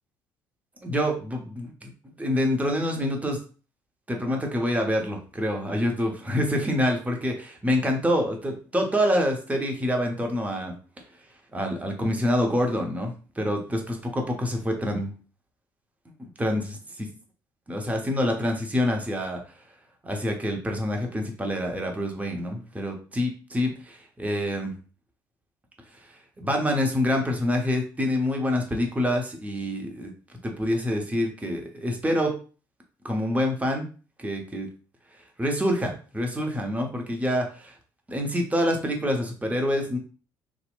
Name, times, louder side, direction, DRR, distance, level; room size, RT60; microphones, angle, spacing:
voice 1, 0.8-1.9 2.2-3.4 4.1-10.7 11.5-15.1 16.4-17.1 17.7-19.4 20.0-24.7 26.4-30.1 30.4-32.3 33.0-33.9 34.2-34.7 35.4-37.7 38.1-40.0, left 1 dB, 15° right, 1 dB, 0.8 m, -26 dB
2.8 x 2.1 x 2.4 m, 0.37 s
hypercardioid pair, 55°, 11 cm